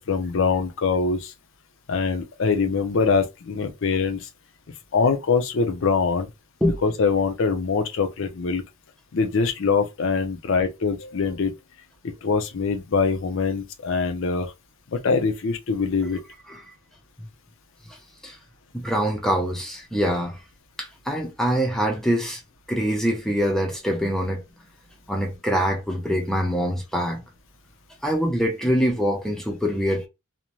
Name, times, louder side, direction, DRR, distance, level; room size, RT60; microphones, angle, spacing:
voice 1, 0.0-1.3 1.9-4.3 4.9-6.3 6.8-8.6 9.1-11.5 12.0-14.5 14.9-16.2, left 4 dB, 60° left, 0.5 m, -23 dB
voice 2, 18.7-20.4 20.8-22.4 22.7-24.4 25.1-27.2 28.0-30.1, equal, ahead, 0.4 m, -24 dB
2.5 x 2.1 x 3.0 m
head